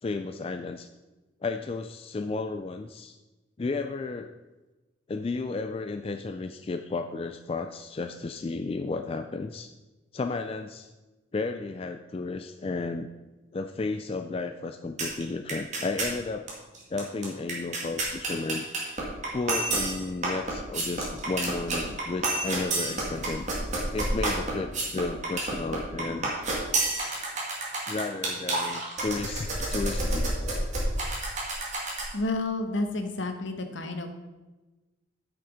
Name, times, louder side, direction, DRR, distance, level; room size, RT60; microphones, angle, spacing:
voice 1, 0.0-0.9 1.4-3.2 3.6-4.3 5.1-9.7 10.1-10.9 11.3-13.1 13.5-16.5 16.9-18.7 19.3-23.5 23.9-26.3 27.9-30.7, left 3 dB, 30° left, 7 dB, 0.3 m, -33 dB
sound 1, 15.0-15.2 15.5-16.1 16.5-16.6 16.7-32.1, right 2 dB, 35° right, 2.2 m, -29 dB
voice 2, 32.1-34.1, left 2 dB, 70° left, 6 dB, 1.2 m, -30 dB
9.7 x 6.0 x 5.0 m, 1.1 s
head